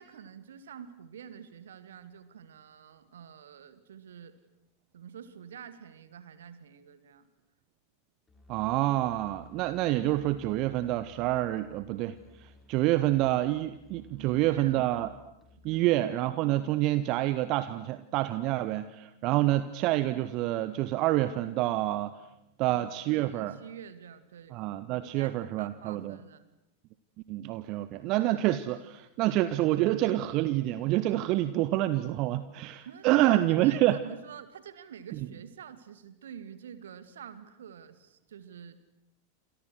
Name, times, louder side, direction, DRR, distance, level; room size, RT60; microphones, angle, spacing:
voice 1, 0.0-4.4 4.9-7.3 14.1-15.1 15.6-16.0 22.6-24.6 25.0-25.3 25.6-26.5 32.9-38.8, right 8 dB, 65° right, 12 dB, 2.3 m, -48 dB
Musical instrument, 8.3-15.9, left 3 dB, 10° left, 6.7 m, -57 dB
voice 2, 8.5-15.1 15.6-22.1 22.6-23.5 24.5-26.2 27.3-34.0, right 15 dB, 40° right, 14 dB, 1.1 m, -27 dB
28.0 x 28.0 x 6.4 m, 0.86 s
figure-of-eight pair, 90°, 0 cm